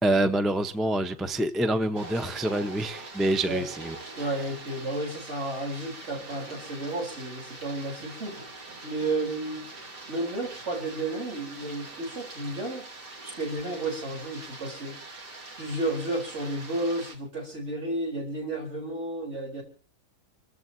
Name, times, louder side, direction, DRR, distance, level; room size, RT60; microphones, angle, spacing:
voice 1, 0.0-4.0, right 1 dB, ahead, 0.5 m, -26 dB
sound 1, 1.9-17.1, right 2 dB, 80° right, 3.7 m, -43 dB
voice 2, 4.2-8.5 8.8-9.7 10.1-12.9 13.2-15.0 15.6-19.6, right 2 dB, 40° right, 4.2 m, -32 dB
28.5 x 14.0 x 2.8 m
omnidirectional pair, 1.8 m